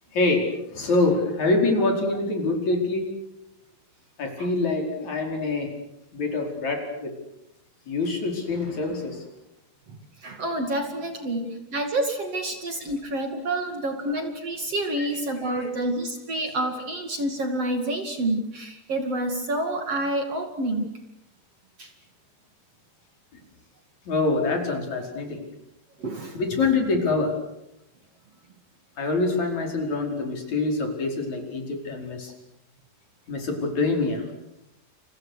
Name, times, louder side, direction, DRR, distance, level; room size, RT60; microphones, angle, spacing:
voice 1, 0.1-3.1 4.2-5.7 6.1-7.2 7.9-9.2 15.0-15.1 15.4-15.7 24.1-25.4 26.3-27.4 29.0-32.3 33.3-34.3, left 3 dB, 50° left, 2 dB, 6.1 m, -25 dB
voice 2, 10.2-20.9 21.8-21.9 26.0-26.4, right 1 dB, 45° right, 5 dB, 3.1 m, -28 dB
30.0 x 29.5 x 6.6 m, 0.83 s
omnidirectional pair, 4.3 m